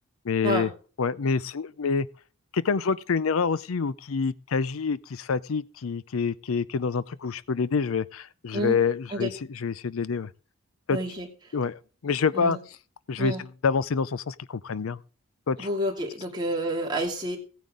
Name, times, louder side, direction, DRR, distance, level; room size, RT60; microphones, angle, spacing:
voice 1, 0.2-0.7 1.0-2.1 2.5-10.3 10.9-11.0 11.5-12.6 13.1-13.3 13.6-15.0 15.5-15.7, left 5 dB, 85° left, 0.5 m, -27 dB
voice 2, 10.9-11.3 12.3-12.6 13.2-13.4 15.6-17.4, right 1 dB, 20° right, 2.7 m, -29 dB
16.5 x 9.3 x 3.8 m
head